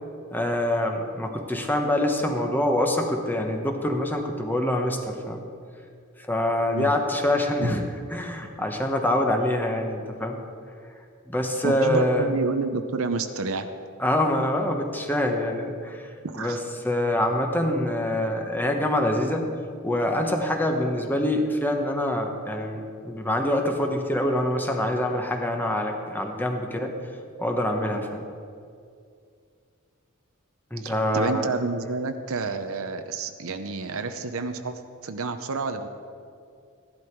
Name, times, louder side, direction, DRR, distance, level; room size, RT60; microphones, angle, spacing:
voice 1, 0.3-5.4 6.2-7.8 8.1-10.4 11.3-12.3 14.0-16.1 16.4-16.6 16.8-19.5 19.8-26.9 27.4-28.2 30.7-31.5, left 1 dB, 10° left, 3 dB, 1.1 m, -25 dB
voice 2, 11.6-13.7 16.2-16.6 30.8-35.9, right 3 dB, 65° right, 8 dB, 0.8 m, -29 dB
15.0 x 11.5 x 4.7 m, 2.3 s
head